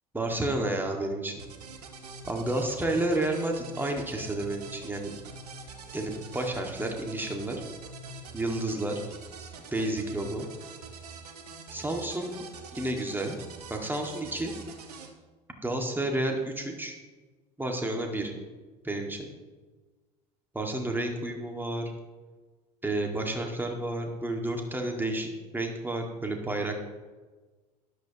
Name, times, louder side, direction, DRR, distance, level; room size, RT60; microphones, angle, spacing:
voice 1, 0.1-1.3 2.3-5.1 5.9-7.6 8.3-8.9 9.7-10.5 11.7-12.3 12.7-13.4 13.7-14.5 15.6-17.0 17.6-18.3 18.8-19.3 20.5-21.8 22.8-25.3 25.5-26.7, right 1 dB, 10° right, 2 dB, 1.9 m, -30 dB
sound 1, 1.4-15.1, right 4 dB, 75° right, 1.1 m, -45 dB
13.0 x 11.0 x 3.0 m, 1.3 s
figure-of-eight pair, 70°, 20 cm